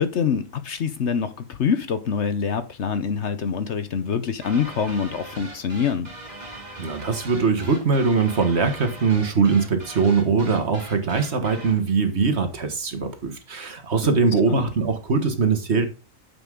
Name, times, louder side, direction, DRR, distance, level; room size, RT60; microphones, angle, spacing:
voice 1, 0.0-6.1 14.5-14.7, left 6 dB, 55° left, 1.0 m, -25 dB
sound 1, 4.4-11.8, right 2 dB, 30° right, 2.4 m, -40 dB
voice 2, 6.8-15.9, right 4 dB, 50° right, 1.6 m, -22 dB
9.7 x 7.2 x 3.7 m
omnidirectional pair, 1.5 m